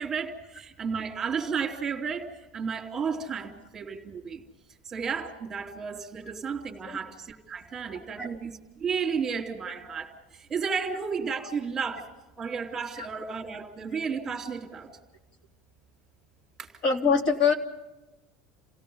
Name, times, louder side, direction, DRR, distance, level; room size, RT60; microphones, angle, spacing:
voice 1, 0.0-4.4 4.8-8.5 8.8-12.1 12.4-14.9 16.6-16.7, right 6 dB, 20° right, 1 dB, 3.0 m, -33 dB
voice 2, 7.9-8.3 13.0-13.1 16.8-17.5, left 5 dB, 40° left, 1 dB, 3.5 m, -24 dB
29.0 x 17.0 x 5.5 m, 0.99 s
supercardioid pair, 145°, 2 cm